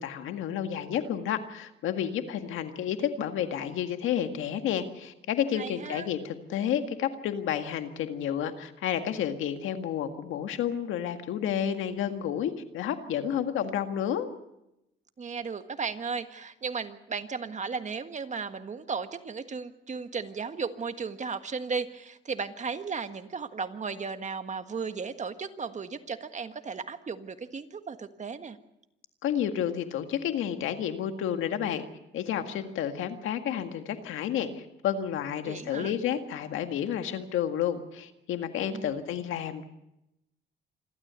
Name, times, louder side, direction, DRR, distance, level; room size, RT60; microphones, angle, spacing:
voice 1, 0.0-14.3 29.2-31.8 32.1-39.6, left 9 dB, 85° left, 7 dB, 1.9 m, -30 dB
voice 2, 5.6-6.1 15.2-28.6 35.4-35.9 38.7-39.0, right 5 dB, 35° right, 9 dB, 1.6 m, -35 dB
27.0 x 12.5 x 8.2 m, 0.87 s
cardioid pair, 90°, 20 cm